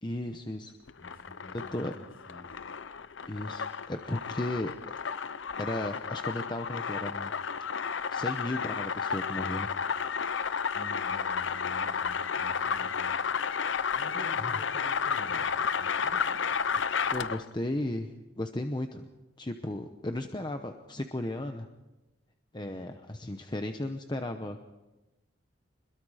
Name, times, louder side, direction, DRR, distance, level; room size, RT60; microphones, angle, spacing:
voice 1, 0.0-0.7 1.5-1.9 3.3-4.7 5.6-7.3 8.1-9.7 14.4-14.5 17.1-18.1 18.4-19.1 19.4-21.7 22.5-24.7, left 1 dB, 25° left, 6 dB, 0.9 m, -35 dB
sound 1, 0.9-17.5, left 6 dB, 75° left, 0.7 m, -32 dB
voice 2, 1.0-2.5 10.7-13.1 13.9-15.5 15.8-16.3, equal, 50° left, 1 dB, 7.6 m, -49 dB
26.0 x 22.0 x 5.0 m, 1.1 s
head